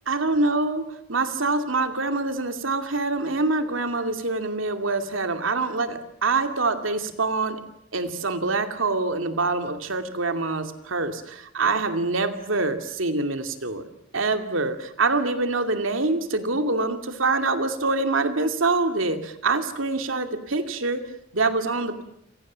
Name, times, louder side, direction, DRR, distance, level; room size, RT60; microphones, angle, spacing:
voice 1, 0.1-7.6 7.9-13.8 14.1-21.0 21.3-22.0, right 3 dB, 85° right, 8 dB, 2.6 m, -25 dB
28.5 x 27.0 x 7.5 m, 0.76 s
head